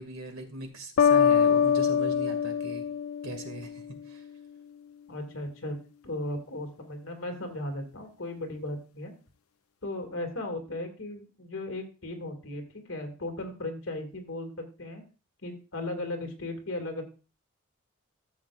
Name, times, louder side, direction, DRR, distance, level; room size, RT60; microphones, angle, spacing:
voice 1, 0.0-2.9 3.2-4.3, right 2 dB, 80° right, 5 dB, 2.3 m, -39 dB
sound 1, 1.0-3.8, left 7 dB, 85° left, 0.5 m, -24 dB
voice 2, 5.1-5.8 6.0-9.1 9.8-14.5 14.8-15.0 15.4-17.0, left 1 dB, 65° left, 3 dB, 2.2 m, -36 dB
13.5 x 7.2 x 2.5 m, 0.34 s
head